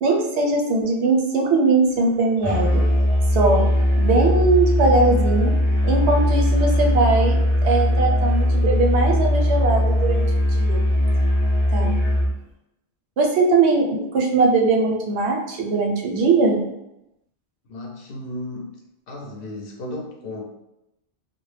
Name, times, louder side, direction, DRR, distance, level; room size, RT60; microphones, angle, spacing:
voice 1, 0.0-2.8 3.3-3.7 4.0-5.5 5.8-7.4 7.6-10.8 11.7-12.0 13.2-16.6, right 3 dB, 85° right, 1 dB, 0.9 m, -20 dB
Musical instrument, 2.4-12.4, left 1 dB, 10° left, 0.6 m, -19 dB
voice 2, 17.7-18.8 19.1-20.4, left 1 dB, 65° left, 0 dB, 0.7 m, -34 dB
2.2 x 2.0 x 3.1 m, 0.88 s
omnidirectional pair, 1.1 m